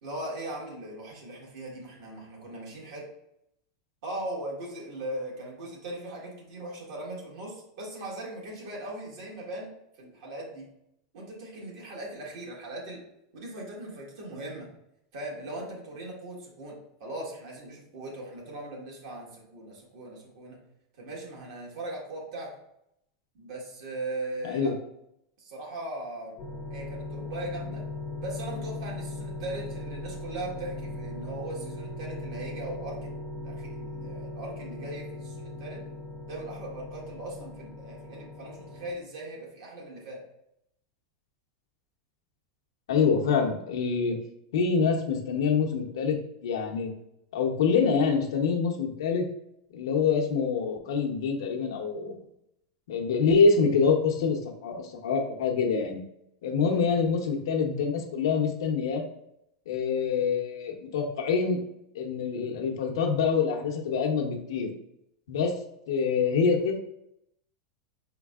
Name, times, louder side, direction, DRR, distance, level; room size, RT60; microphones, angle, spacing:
voice 1, 0.0-3.1 4.0-9.7 10.0-10.7 11.1-13.0 13.3-14.7 15.1-20.6 21.0-22.5 23.3-24.7 25.4-26.4 26.7-27.8 28.2-33.1 33.4-35.8 36.3-40.2 56.7-56.9, right 1 dB, 65° right, -3 dB, 1.7 m, -39 dB
sound 1, 26.4-38.9, left 2 dB, 30° left, 0.7 m, -39 dB
voice 2, 42.9-44.1 44.5-46.2 46.4-46.9 47.3-49.3 49.7-52.2 52.9-56.0 56.4-59.0 59.7-61.6 61.9-64.7 65.3-65.6 65.9-66.8, left 5 dB, 85° left, 2 dB, 1.0 m, -25 dB
5.3 x 3.8 x 2.4 m, 0.79 s
supercardioid pair, 145°, 2 cm